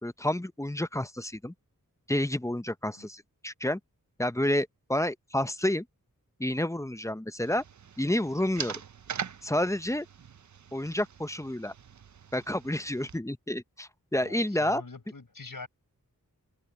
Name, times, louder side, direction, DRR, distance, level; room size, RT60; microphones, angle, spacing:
voice 1, 0.0-1.5 2.1-3.8 4.2-5.8 6.4-7.6 8.0-8.8 9.4-10.1 10.7-11.7 12.3-14.8, left 1 dB, 10° left, 0.7 m, -29 dB
sound 1, 7.4-13.2, right 7 dB, 55° right, 0.6 m, -42 dB
voice 2, 14.2-15.7, left 4 dB, 70° left, 5.6 m, -44 dB
open air
wide cardioid pair, 75°, 35 cm